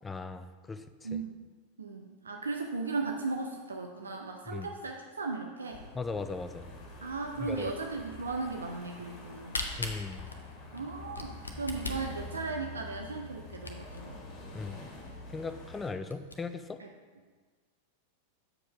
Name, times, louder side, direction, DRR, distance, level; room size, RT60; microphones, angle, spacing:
voice 1, 0.0-1.1 4.5-4.7 5.9-6.7 7.4-7.7 9.8-10.3 14.5-14.8 15.3-16.8, left 4 dB, 15° left, 11 dB, 0.4 m, -38 dB
voice 2, 1.0-1.4 1.8-5.8 7.0-9.6 10.7-14.2 16.8-16.9, right 3 dB, 75° right, 2 dB, 0.5 m, -36 dB
sound 1, 5.7-15.9, left 2 dB, 40° left, 1.5 m, -47 dB
Camera, 9.1-14.1 14.6-14.7 14.9-15.0 15.5-15.6 15.9-16.3, left 3 dB, 80° left, 0.7 m, -39 dB
7.5 x 5.1 x 4.8 m, 1.4 s
figure-of-eight pair, 90°, 0 cm